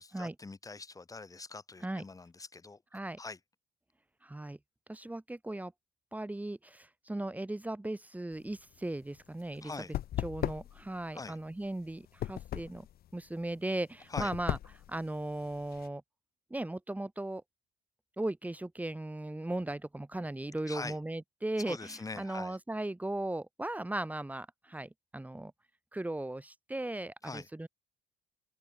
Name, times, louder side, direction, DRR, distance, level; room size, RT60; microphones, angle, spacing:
voice 1, 0.0-2.8 3.2-3.4 9.6-9.9 11.1-11.4 14.1-14.3 20.7-21.0 21.6-22.6 27.2-27.5, left 3 dB, 20° left, 6.7 m, -43 dB
voice 2, 4.2-4.6 4.9-5.7 6.1-9.7 10.2-12.9 13.1-14.6 14.9-16.0 16.5-17.4 18.2-25.5 25.9-27.7, right 1 dB, 10° right, 5.2 m, -37 dB
sound 1, 8.3-15.9, left 12 dB, 65° left, 5.2 m, -39 dB
open air
cardioid pair, 110°, 17 cm